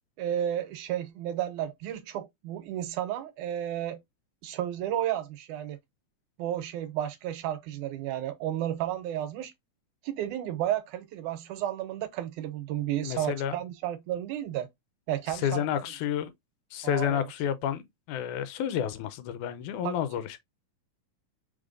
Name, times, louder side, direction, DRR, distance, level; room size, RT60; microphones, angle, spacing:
voice 1, 0.2-4.0 4.4-5.8 6.4-9.5 10.0-14.7 15.1-15.6 16.8-17.3 19.8-20.0, right 11 dB, 85° right, 2.2 m, -32 dB
voice 2, 13.0-13.6 15.3-16.3 16.7-17.8 18.1-20.4, left 9 dB, 90° left, 2.1 m, -30 dB
5.2 x 3.6 x 2.5 m
omnidirectional pair, 3.5 m